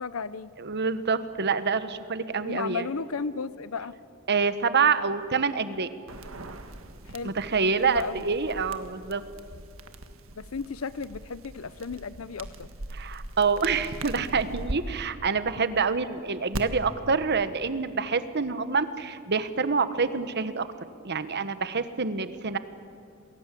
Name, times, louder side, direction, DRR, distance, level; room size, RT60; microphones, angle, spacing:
voice 1, 0.0-0.5 2.4-3.9 7.1-7.3 7.8-8.2 10.4-12.7, left 5 dB, 85° left, 16 dB, 0.7 m, -34 dB
voice 2, 0.6-2.8 4.3-5.9 7.2-9.2 12.9-20.7 21.0-22.6, right 5 dB, 55° right, 12 dB, 1.3 m, -26 dB
sound 1, 6.1-14.8 16.5-16.6, right 2 dB, 70° right, 1.7 m, -40 dB
28.5 x 21.5 x 8.5 m, 2.4 s
head